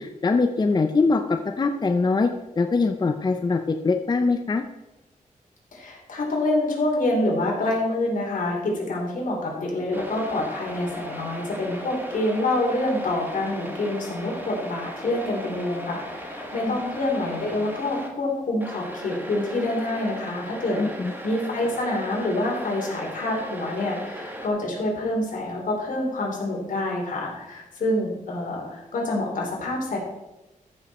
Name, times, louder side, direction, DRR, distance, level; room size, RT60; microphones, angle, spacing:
voice 1, 0.0-2.3 2.6-4.7 16.7-16.8 20.8-21.1, left 3 dB, 30° left, 6 dB, 0.6 m, -23 dB
voice 2, 5.7-20.8 21.2-30.0, left 1 dB, 80° left, -2 dB, 3.4 m, -27 dB
sound 1, 9.9-18.1 18.6-24.5, equal, 15° right, 1.6 m, -37 dB
13.5 x 6.6 x 4.3 m, 0.97 s
wide cardioid pair, 130°, 14 cm